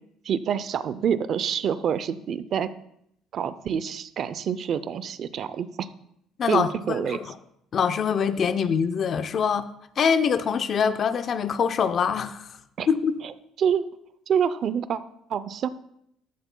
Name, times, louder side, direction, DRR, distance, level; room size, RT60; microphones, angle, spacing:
voice 1, 0.3-2.7 3.3-5.9 6.5-7.2 12.8-12.9 13.6-13.9 14.3-15.0 15.3-15.7, right 8 dB, 40° right, 15 dB, 0.4 m, -26 dB
voice 2, 6.4-7.3 7.7-9.7 10.0-12.5 12.9-13.2, left 6 dB, 35° left, 11 dB, 0.5 m, -24 dB
15.0 x 12.0 x 2.2 m, 0.74 s
cardioid pair, 155°, 0 cm